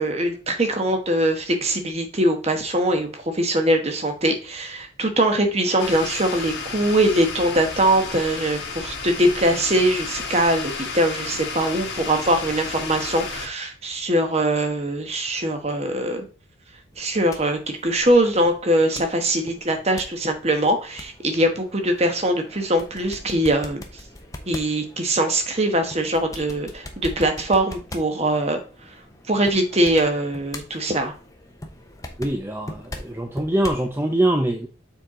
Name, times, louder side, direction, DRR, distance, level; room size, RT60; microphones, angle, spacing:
voice 1, 0.0-16.3 17.0-23.8 24.5-28.6 29.3-31.1, right 1 dB, 30° right, 5 dB, 1.2 m, -22 dB
sound 1, 5.8-13.5, left 4 dB, 55° left, 1.5 m, -32 dB
sound 2, 16.9-33.9, left 1 dB, 15° left, 0.9 m, -41 dB
voice 2, 32.2-34.7, right 1 dB, 10° right, 4 dB, 0.6 m, -23 dB
7.0 x 4.5 x 3.7 m, 0.36 s
head